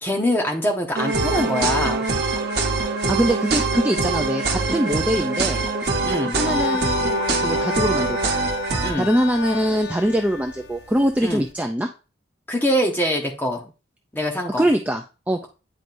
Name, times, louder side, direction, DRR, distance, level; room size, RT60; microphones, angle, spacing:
voice 1, 0.0-2.0 6.0-6.4 8.8-9.1 11.2-11.4 12.5-13.6 14.1-14.6, equal, 10° left, 1 dB, 1.1 m, -23 dB
sound 1, 0.9-8.9, right 3 dB, 55° right, 1.2 m, -23 dB
voice 2, 3.1-5.6 6.4-8.3 9.0-11.9 14.6-15.5, equal, 10° right, 3 dB, 0.4 m, -23 dB
sound 2, 6.3-11.5, left 6 dB, 65° left, 0.6 m, -31 dB
9.3 x 5.0 x 2.6 m, 0.33 s
head